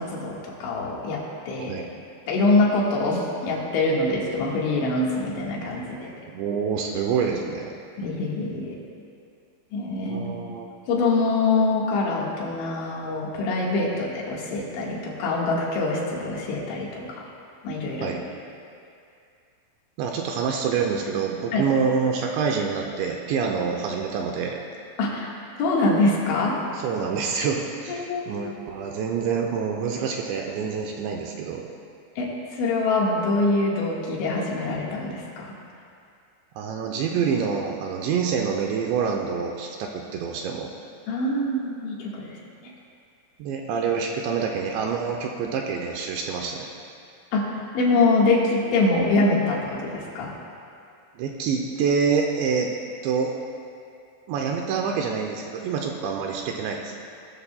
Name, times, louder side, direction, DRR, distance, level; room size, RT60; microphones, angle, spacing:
voice 1, 0.0-1.8 2.3-6.1 8.0-8.8 9.7-10.3 10.9-17.2 17.6-18.1 21.5-21.6 25.0-25.3 25.6-26.6 27.9-28.3 32.2-35.5 41.1-42.3 42.6-42.7 47.3-50.3, left 2 dB, 75° left, -4 dB, 4.0 m, -24 dB
voice 2, 6.3-7.7 10.1-10.7 18.0-18.2 20.0-24.6 26.7-31.6 36.6-40.7 42.6-42.7 43.4-46.7 51.2-52.7 53.0-53.3 54.3-56.9, right 6 dB, 80° right, 1 dB, 2.7 m, -26 dB
19.0 x 13.0 x 2.3 m, 2.4 s
omnidirectional pair, 5.6 m